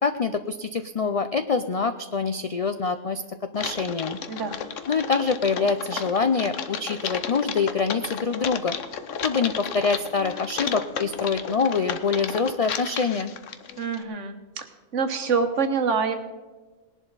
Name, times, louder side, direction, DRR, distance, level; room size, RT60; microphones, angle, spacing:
voice 1, 0.0-3.2 3.5-4.2 4.9-8.8 9.2-13.3, left 5 dB, 60° left, 9 dB, 0.3 m, -25 dB
Typing, 3.5-14.0, left 7 dB, 80° left, 1.2 m, -33 dB
voice 2, 4.3-4.6 13.8-14.6 14.9-16.1, right 5 dB, 75° right, 7 dB, 1.5 m, -26 dB
19.5 x 11.0 x 4.0 m, 1.3 s
omnidirectional pair, 1.3 m